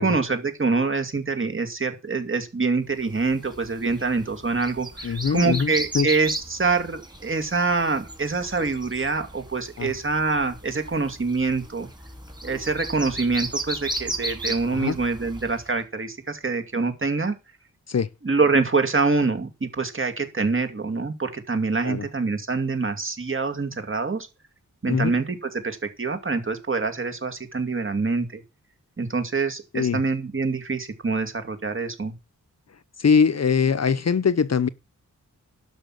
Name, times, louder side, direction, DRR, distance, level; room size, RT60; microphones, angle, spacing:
voice 1, 0.0-11.9 12.4-17.3 18.2-24.3 24.8-28.4 29.0-32.1, right 4 dB, 40° right, 2.4 m, -25 dB
sound 1, 3.2-15.7, right 1 dB, 15° right, 3.2 m, -35 dB
voice 2, 5.0-6.1 9.8-9.9 14.7-15.0 17.9-18.1 21.8-22.0 24.9-25.1 29.7-30.0 33.0-34.7, left 6 dB, 50° left, 0.8 m, -22 dB
12.0 x 5.9 x 7.8 m
wide cardioid pair, 100°, 32 cm